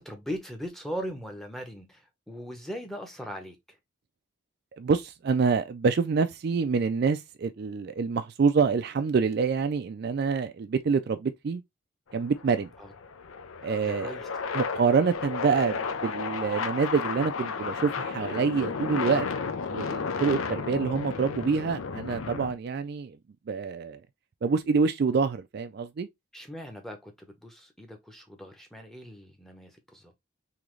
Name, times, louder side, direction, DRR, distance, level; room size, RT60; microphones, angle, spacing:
voice 1, 0.0-3.8 12.8-12.9 13.9-14.3 26.3-30.1, equal, ahead, 0.8 m, -39 dB
voice 2, 4.7-11.6 12.1-12.7 13.6-14.2 14.5-19.3 19.7-23.2 23.5-24.0 24.4-26.1, right 5 dB, 50° right, 0.3 m, -26 dB
sound 1, 12.1-22.5, left 5 dB, 80° left, 0.5 m, -33 dB
3.7 x 2.9 x 3.1 m
head